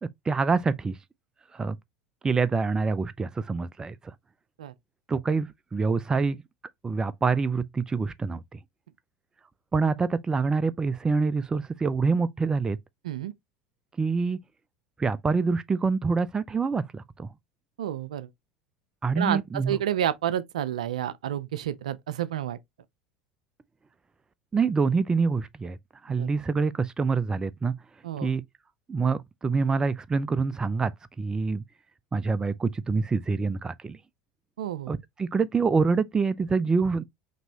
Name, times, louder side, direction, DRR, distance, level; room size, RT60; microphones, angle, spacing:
voice 1, 0.0-1.0 1.5-1.8 2.2-3.9 5.1-6.4 6.8-8.6 9.7-12.8 14.0-14.4 15.0-17.3 19.0-19.8 24.5-25.8 26.0-27.7 28.2-28.4 28.9-30.9 31.2-31.6 32.1-34.0 34.9-37.0, right 4 dB, 20° right, 0.4 m, -26 dB
voice 2, 17.8-18.3 19.2-22.6 26.2-26.3 28.0-28.3 34.6-34.9, right 11 dB, 80° right, 0.4 m, -30 dB
5.3 x 3.0 x 2.8 m
hypercardioid pair, 80°, 4 cm